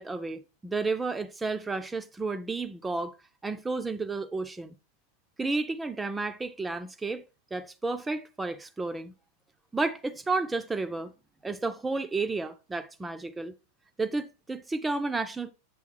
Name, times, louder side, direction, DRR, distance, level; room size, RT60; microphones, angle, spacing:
voice 1, 0.0-3.2 3.4-4.7 5.4-7.2 7.5-9.1 9.7-11.1 11.4-13.5 14.0-15.5, right 3 dB, 10° right, 0.4 m, -32 dB
8.4 x 3.5 x 4.6 m
figure-of-eight pair, 90°, 0 cm